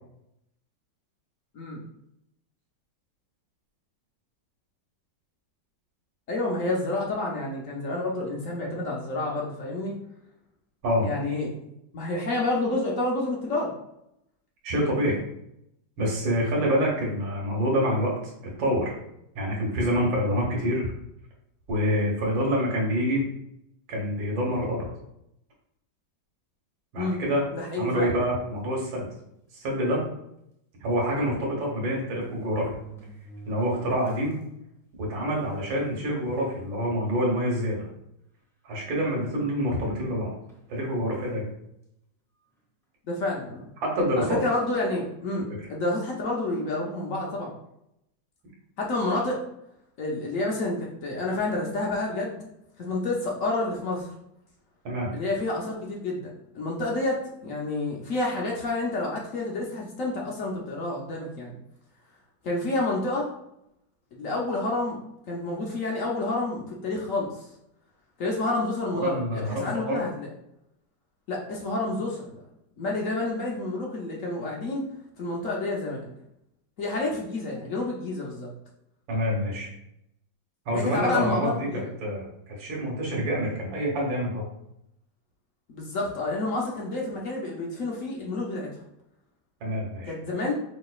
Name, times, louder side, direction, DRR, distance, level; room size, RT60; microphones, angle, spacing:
voice 1, 6.3-10.0 11.0-11.5 11.9-13.7 26.9-27.2 27.5-28.1 43.1-43.7 44.2-47.5 48.8-49.4 50.0-52.4 52.8-54.1 55.1-61.5 62.4-63.3 64.1-65.0 65.3-67.5 68.2-70.3 71.3-72.4 72.8-74.8 75.2-76.1 76.8-78.5 80.7-81.9 85.7-88.7 90.1-90.5, left 2 dB, 60° left, -2 dB, 0.9 m, -29 dB
voice 2, 14.6-15.2 16.0-18.1 18.4-18.9 19.4-20.9 21.7-23.2 23.9-24.9 26.9-27.5 27.8-29.1 29.5-30.0 30.8-32.7 33.5-34.4 35.0-37.9 38.6-40.3 40.7-41.5 43.8-44.4 54.8-55.1 68.9-70.0 79.1-79.7 80.7-84.5 89.6-90.1, equal, 85° right, -2 dB, 1.9 m, -26 dB
sound 1, 28.6-28.8 29.6-29.7 30.0-30.1 31.4-31.5 32.2-34.4 34.9-35.0 35.8-35.9 36.3-36.6 37.3-37.4 38.7-39.5 40.5-40.7, right 4 dB, 5° left, 0.5 m, -47 dB
5.2 x 3.8 x 2.4 m, 0.78 s
omnidirectional pair, 2.1 m